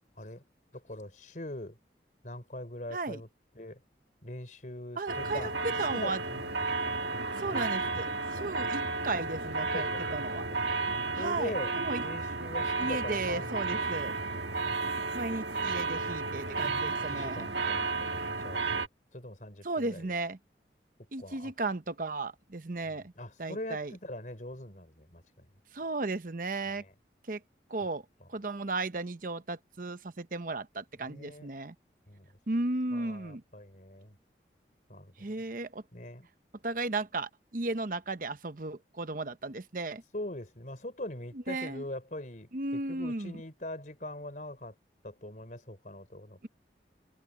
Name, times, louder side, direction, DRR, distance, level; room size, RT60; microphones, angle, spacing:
voice 1, 0.7-1.8 2.2-3.3 3.5-3.8 4.2-5.6 5.9-6.5 7.5-7.7 8.0-8.5 9.7-10.8 11.2-11.7 12.0-13.9 16.6-18.9 19.1-20.1 21.2-21.5 22.9-25.5 26.7-26.9 31.0-31.5 32.1-32.3 32.9-34.1 34.9-35.3 35.9-36.3 40.1-44.7 45.0-46.4, left 1 dB, 45° left, 4.4 m, -42 dB
voice 2, 2.9-3.2 5.0-6.2 7.4-10.5 11.1-12.0 12.8-14.2 15.1-17.5 19.6-20.4 21.1-23.1 23.4-23.9 25.7-26.8 27.3-27.4 27.7-28.0 28.3-31.7 32.5-33.4 35.2-35.8 36.6-40.0 41.3-41.8 42.5-43.4, right 2 dB, 50° right, 0.9 m, -35 dB
sound 1, 5.1-18.9, right 3 dB, 80° right, 1.7 m, -33 dB
head